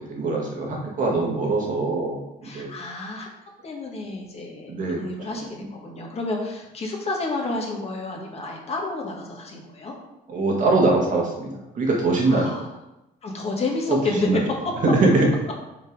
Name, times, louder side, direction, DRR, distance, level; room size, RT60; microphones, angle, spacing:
voice 1, 0.1-2.2 2.5-2.7 4.7-5.0 10.3-11.5 11.7-12.5 13.9-14.0 14.2-14.4 14.9-15.3, right 3 dB, 50° right, -1 dB, 1.7 m, -22 dB
voice 2, 2.4-3.3 3.6-9.9 12.3-12.7 13.2-14.3, left 3 dB, 35° left, 0 dB, 1.5 m, -30 dB
5.5 x 4.5 x 4.7 m, 0.93 s
cardioid pair, 110°, 17 cm